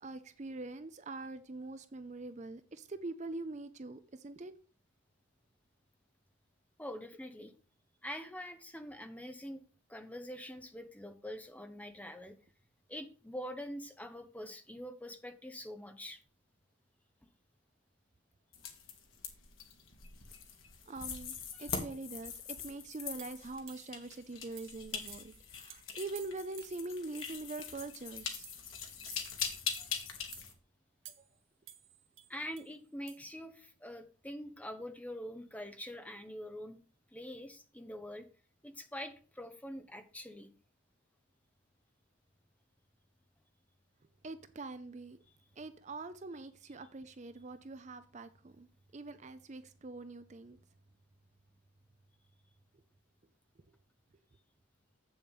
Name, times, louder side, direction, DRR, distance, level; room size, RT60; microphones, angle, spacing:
voice 1, 0.0-4.5 20.9-28.5 44.2-45.2 45.6-50.6, right 2 dB, 35° right, 0.5 m, -44 dB
voice 2, 6.8-7.5 8.0-9.6 9.9-12.4 12.9-16.2 21.5-21.7 29.8-29.9 32.3-36.8 37.1-38.3 38.6-40.5, equal, 5° left, 0.8 m, -45 dB
sound 1, 18.5-30.5, left 6 dB, 75° left, 1.9 m, -42 dB
sound 2, 23.2-24.0 24.6-24.8 25.1-25.4 25.7-25.8 26.2-26.8 27.2-27.5 27.8-28.0 28.4-28.7 29.1-29.3 29.7-30.0 30.3-30.5 31.1-31.4 31.7-32.7 33.1-33.2, right 11 dB, 70° right, 1.3 m, -53 dB
7.8 x 7.1 x 5.4 m
head